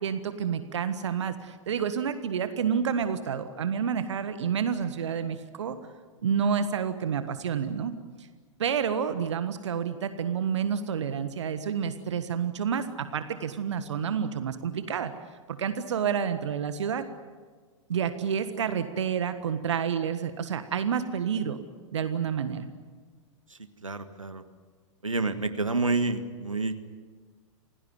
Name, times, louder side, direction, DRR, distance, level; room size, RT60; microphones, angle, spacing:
voice 1, 0.0-5.8 6.2-7.9 8.2-8.3 8.6-15.1 15.5-17.0 17.9-21.6 21.9-22.7, right 7 dB, 60° right, 10 dB, 1.5 m, -29 dB
voice 2, 23.8-24.4 25.0-26.7, right 3 dB, 80° right, 9 dB, 1.7 m, -28 dB
28.0 x 17.5 x 9.6 m, 1.5 s
figure-of-eight pair, 105°, 16 cm